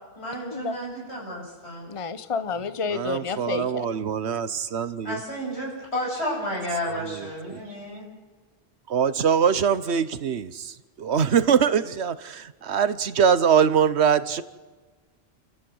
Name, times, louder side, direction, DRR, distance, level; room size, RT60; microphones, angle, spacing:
voice 1, 0.2-1.9 5.0-8.1, equal, 85° left, 8.4 m, -31 dB
voice 2, 1.9-3.9, left 5 dB, 35° left, 0.9 m, -30 dB
voice 3, 2.9-5.2 7.1-7.6 8.9-14.4, right 7 dB, 90° right, 1.3 m, -23 dB
30.0 x 14.5 x 7.9 m
omnidirectional pair, 1.1 m